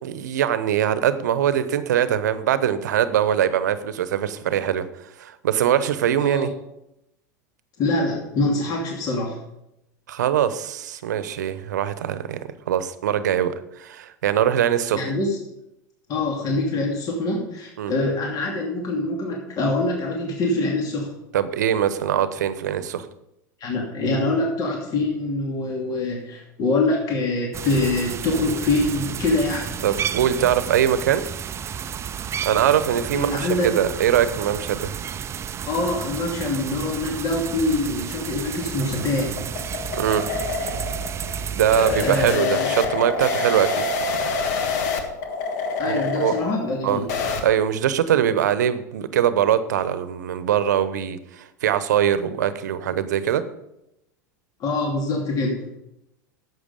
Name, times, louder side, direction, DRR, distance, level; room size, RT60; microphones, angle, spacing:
voice 1, 0.0-6.5 10.1-15.2 17.8-17.9 21.3-23.1 29.8-31.2 32.4-34.9 40.0-40.2 41.5-43.8 45.8-46.3 46.8-47.0 47.4-53.4, right 10 dB, 75° right, 13 dB, 0.9 m, -22 dB
voice 2, 7.8-9.4 14.9-15.4 16.1-21.1 23.6-29.8 33.1-33.7 35.7-39.4 42.0-42.7 45.8-47.1 54.6-55.6, left 2 dB, 40° left, -1 dB, 2.6 m, -24 dB
sound 1, 27.5-42.4, right 8 dB, 30° right, 0.5 m, -32 dB
sound 2, 38.5-47.4, left 4 dB, 65° left, 1.6 m, -27 dB
11.0 x 7.9 x 5.3 m, 0.87 s
hypercardioid pair, 90°, 9 cm